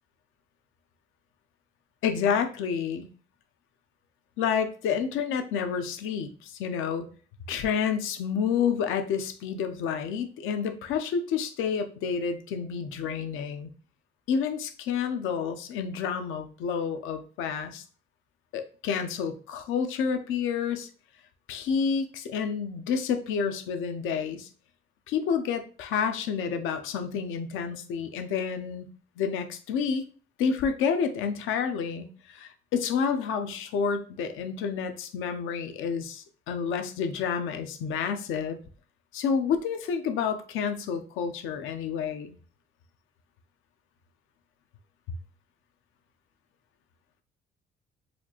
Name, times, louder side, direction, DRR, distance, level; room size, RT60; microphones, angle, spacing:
voice 1, 2.0-3.1 4.4-7.1 7.5-13.7 14.3-17.8 18.5-20.9 21.5-24.5 25.1-28.9 29.2-30.0 30.4-38.6 39.1-42.4, left 6 dB, 90° left, 7 dB, 0.5 m, -29 dB
4.2 x 2.4 x 2.9 m, 0.38 s
cardioid pair, 90°, 20 cm